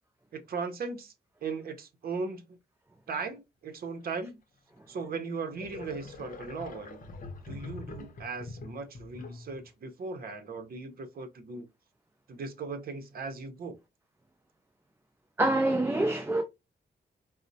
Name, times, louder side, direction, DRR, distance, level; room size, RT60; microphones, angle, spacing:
voice 1, 0.3-1.1 1.4-2.6 3.1-4.4 4.9-7.1 7.5-11.7 12.3-13.7, right 4 dB, 60° right, 0.7 m, -38 dB
sound 1, 4.8-4.9 5.5-9.7, left 3 dB, 55° left, 0.7 m, -44 dB
voice 2, 15.4-16.4, right 1 dB, 15° right, 0.3 m, -25 dB
4.1 x 2.0 x 2.6 m
wide cardioid pair, 145°, 17 cm